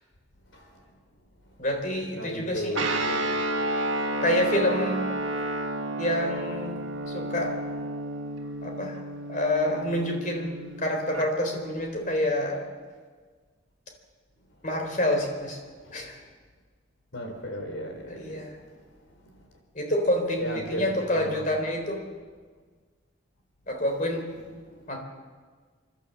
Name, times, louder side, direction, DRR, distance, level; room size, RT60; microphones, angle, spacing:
voice 1, 0.5-0.9 1.4-1.6 2.1-3.4 5.2-5.4 6.7-7.3 8.6-8.8 14.5-14.7 15.7-16.3 17.1-19.6 20.4-21.4 24.4-24.9, equal, 85° left, 3 dB, 4.3 m, -38 dB
voice 2, 1.6-2.7 4.2-5.1 6.0-6.8 7.1-7.5 8.6-9.0 9.3-12.6 14.6-15.6 15.9-16.2 18.1-18.5 19.7-22.0 23.7-24.3 24.9-25.0, left 1 dB, 40° left, 3 dB, 4.0 m, -27 dB
Guitar, 2.7-11.3, right 1 dB, 80° right, 1.8 m, -31 dB
29.5 x 12.0 x 7.5 m, 1.5 s
head